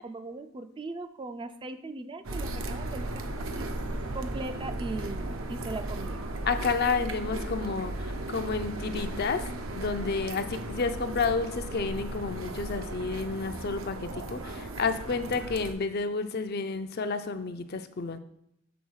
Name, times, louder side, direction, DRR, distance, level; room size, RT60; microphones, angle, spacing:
voice 1, 0.0-3.7 4.1-6.2, right 2 dB, 25° right, 8 dB, 0.4 m, -39 dB
sound 1, 2.2-15.7, right 1 dB, 75° right, 0.8 m, -36 dB
voice 2, 6.5-18.2, left 4 dB, 50° left, 9 dB, 0.5 m, -30 dB
7.0 x 4.0 x 6.3 m, 0.76 s
head